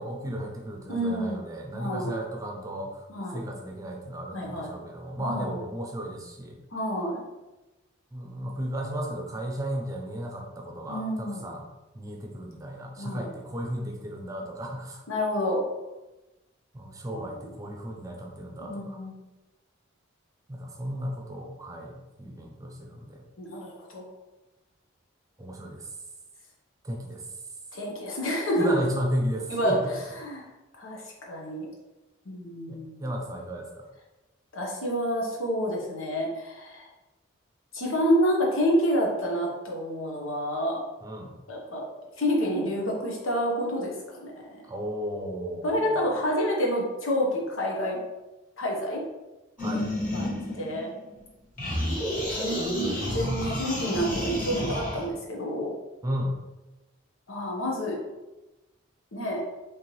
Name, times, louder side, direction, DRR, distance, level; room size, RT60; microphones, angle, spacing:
voice 1, 0.0-3.1 3.3-6.6 8.1-11.7 11.9-15.0 16.7-19.0 20.5-23.2 25.4-25.9 26.8-27.3 28.6-29.9 32.7-33.9 41.0-41.3 44.7-46.1 49.6-49.9 56.0-56.4, equal, 15° right, 1 dB, 0.6 m, -34 dB
voice 2, 0.9-1.4 1.7-2.1 3.1-3.4 4.3-4.7 5.2-5.6 6.7-7.2 10.9-11.4 13.0-13.3 15.1-15.6 17.1-17.2 18.7-19.1 23.4-24.1 27.7-28.8 29.5-29.8 30.2-30.4 30.8-31.7 32.2-33.0 34.5-36.9 37.7-40.8 41.5-41.8 42.2-44.6 45.6-48.0 48.6-49.0 49.6-49.8 50.1-50.9 52.4-55.7 57.3-58.0 59.1-59.4, equal, 85° left, -2 dB, 1.1 m, -28 dB
sound 1, 49.6-51.2 51.6-55.1, left 1 dB, 40° left, 1.4 m, -30 dB
4.4 x 3.2 x 3.2 m, 1.1 s
head